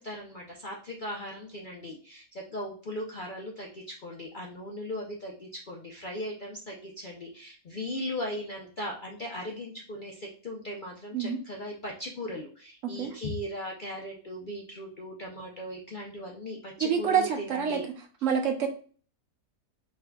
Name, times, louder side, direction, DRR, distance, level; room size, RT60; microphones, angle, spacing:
voice 1, 0.0-17.9, left 1 dB, 60° left, -1 dB, 0.5 m, -38 dB
voice 2, 12.8-13.1 16.8-17.8 18.2-18.7, right 7 dB, 65° right, 3 dB, 1.0 m, -27 dB
4.5 x 3.5 x 2.2 m, 0.41 s
omnidirectional pair, 1.6 m